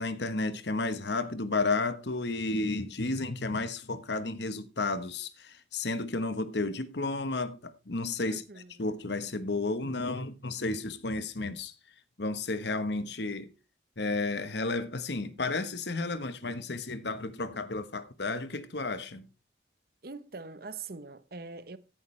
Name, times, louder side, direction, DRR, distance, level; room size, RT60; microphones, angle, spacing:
voice 1, 0.0-8.4 8.8-11.7 12.2-13.5 14.0-19.3, left 3 dB, 65° left, 1.2 m, -32 dB
voice 2, 8.3-9.0 20.0-21.8, right 4 dB, 50° right, 0.9 m, -43 dB
14.0 x 10.5 x 3.3 m
head